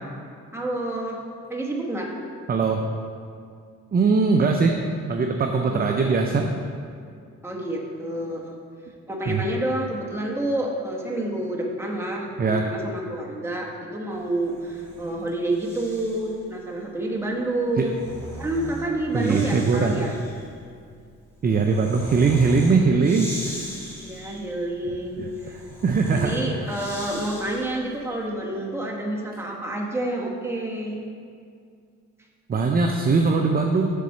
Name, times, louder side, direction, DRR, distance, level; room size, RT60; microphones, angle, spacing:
voice 1, 0.5-1.2 1.5-2.1 5.6-6.1 7.4-8.5 9.1-18.0 18.4-20.2 24.0-25.6 26.1-31.0, right 1 dB, 10° right, -2 dB, 1.3 m, -28 dB
voice 2, 2.5-2.8 3.9-4.8 5.1-6.6 9.3-9.4 12.4-12.6 17.8-17.9 19.1-19.9 21.4-23.6 25.8-26.3 32.5-34.0, right 4 dB, 30° right, 3 dB, 0.5 m, -21 dB
Breathing, 14.4-16.4 17.6-27.9, right 1 dB, 10° left, 1.8 m, -40 dB
6.7 x 4.2 x 6.6 m, 2.3 s
cardioid pair, 90°, 30 cm